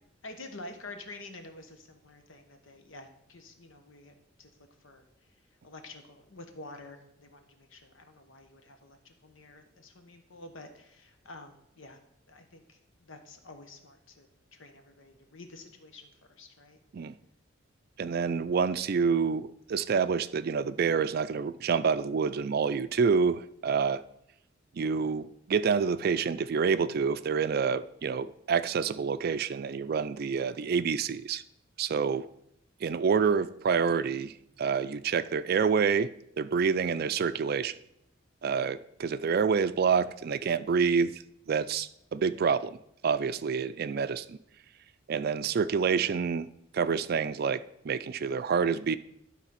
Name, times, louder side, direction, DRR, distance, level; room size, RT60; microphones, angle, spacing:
voice 1, 0.2-5.0 5.6-12.0 12.3-16.8, left 2 dB, 85° left, 6 dB, 1.2 m, -49 dB
voice 2, 18.0-24.0 24.7-31.4 31.8-32.3 32.8-36.1 36.4-37.8 38.4-44.4 45.1-46.5 46.7-49.0, right 6 dB, 50° right, 14 dB, 0.4 m, -28 dB
11.5 x 4.0 x 5.7 m, 0.75 s
head